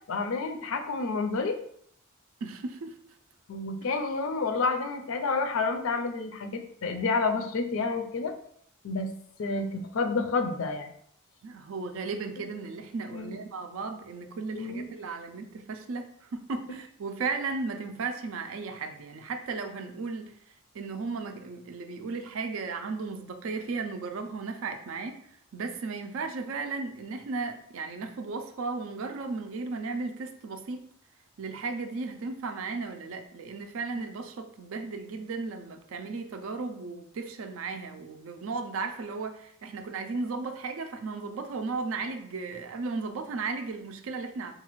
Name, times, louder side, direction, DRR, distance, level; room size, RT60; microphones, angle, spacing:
voice 1, 0.1-1.5 3.5-8.3 8.8-9.1 9.4-10.9 13.1-13.4 14.5-14.9, left 4 dB, 65° left, 6 dB, 0.4 m, -29 dB
voice 2, 2.4-3.0 11.4-20.3 20.7-25.2 25.5-30.9 31.4-44.5, right 4 dB, 65° right, 6 dB, 0.4 m, -35 dB
4.0 x 2.3 x 3.0 m, 0.67 s
head